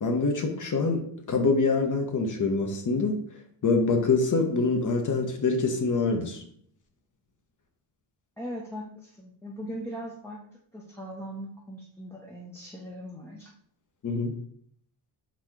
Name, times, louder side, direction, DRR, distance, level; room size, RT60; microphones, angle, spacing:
voice 1, 0.0-3.2 3.6-6.4 14.0-14.3, left 3 dB, 40° left, 4 dB, 0.8 m, -25 dB
voice 2, 8.4-10.4 10.7-13.5, equal, 5° left, -4 dB, 0.5 m, -39 dB
4.1 x 2.8 x 4.6 m, 0.64 s
wide cardioid pair, 135°, 46 cm